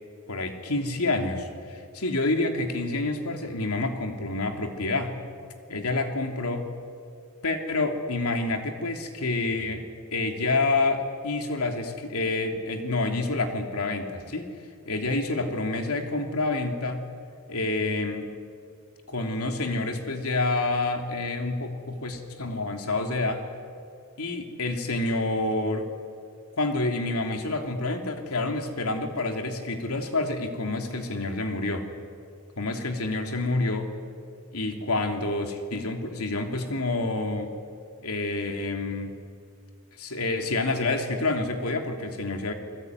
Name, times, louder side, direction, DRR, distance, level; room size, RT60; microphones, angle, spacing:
voice 1, 0.3-5.1 5.7-6.7 7.4-9.8 10.1-14.5 14.8-17.0 17.5-18.4 19.1-23.4 24.2-25.9 26.6-31.9 32.6-33.9 34.5-37.5 38.0-39.1 40.0-42.5, left 2 dB, 85° left, 4 dB, 3.1 m, -28 dB
29.5 x 20.5 x 9.6 m, 2.3 s
head